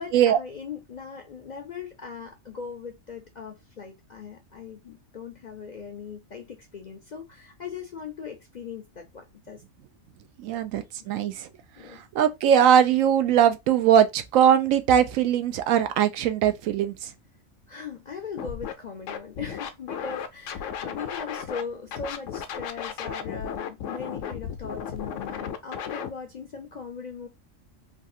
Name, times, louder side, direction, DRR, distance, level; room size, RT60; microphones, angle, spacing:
voice 1, 0.0-9.6 10.5-10.6 11.0-11.1 11.8-12.0 17.7-27.3, left 6 dB, 55° left, 0.5 m, -39 dB
voice 2, 10.4-11.5 11.9-17.1, right 9 dB, 85° right, 1.0 m, -21 dB
Scratching (performance technique), 18.4-18.7 19.1-21.6 21.9-26.1, left 8 dB, 75° left, 0.9 m, -34 dB
3.3 x 2.3 x 2.6 m
omnidirectional pair, 1.3 m